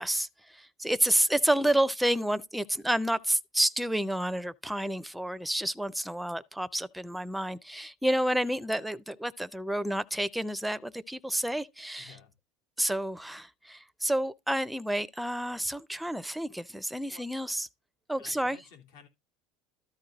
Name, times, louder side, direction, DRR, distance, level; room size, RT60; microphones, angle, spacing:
voice 1, 0.0-12.1 12.8-17.7 18.1-18.6, right 1 dB, ahead, 0.5 m, -29 dB
voice 2, 12.0-12.3 17.1-17.3 18.2-19.1, left 6 dB, 80° left, 3.3 m, -54 dB
13.0 x 4.5 x 4.0 m
supercardioid pair, 130°, 0 cm